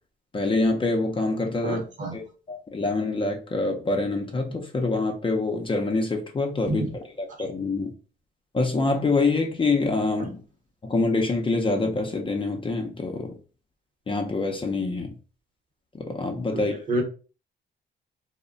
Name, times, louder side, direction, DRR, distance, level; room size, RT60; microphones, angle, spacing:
voice 1, 0.3-1.8 2.1-7.9 8.5-10.4 10.8-13.3 14.1-15.2 15.9-16.8, left 3 dB, 25° left, 0.5 m, -26 dB
voice 2, 1.6-2.2 6.7-6.8 16.5-16.6 16.9-17.0, right 2 dB, 40° right, 1.0 m, -27 dB
2.1 x 2.1 x 3.7 m
cardioid pair, 90°, 20 cm